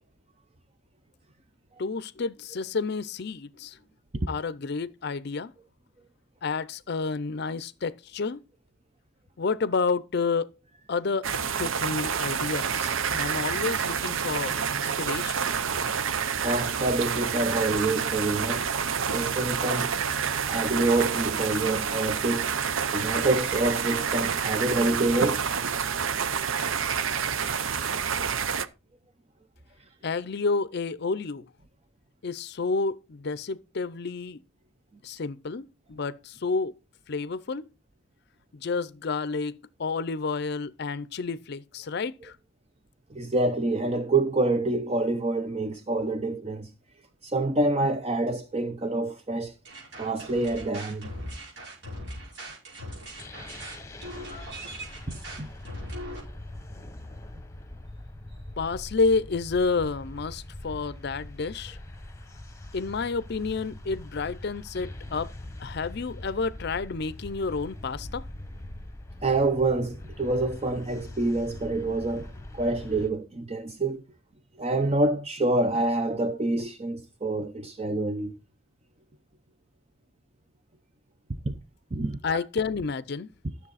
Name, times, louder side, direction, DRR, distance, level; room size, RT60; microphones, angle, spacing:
voice 1, 1.8-3.8 4.3-5.5 6.4-8.4 9.4-10.5 10.9-11.3 11.6-15.5 30.0-31.5 32.2-34.4 35.0-36.7 37.1-37.7 38.5-42.4 58.6-61.8 62.7-65.3 65.6-68.3 82.2-83.3, left 4 dB, 55° left, 0.5 m, -30 dB
sound 1, 11.2-28.7, right 7 dB, 75° right, 0.7 m, -28 dB
voice 2, 16.4-18.7 19.1-19.9 20.5-22.5 22.9-25.5 43.1-46.7 47.2-49.5 50.0-51.1 55.1-55.5 69.2-74.0 74.6-78.3 81.5-81.6 81.9-82.2, right 2 dB, 30° right, 0.6 m, -27 dB
sound 2, 49.7-56.2, equal, 60° right, 5.5 m, -40 dB
sound 3, 53.2-73.1, left 1 dB, 15° left, 1.2 m, -42 dB
12.5 x 7.0 x 4.0 m
head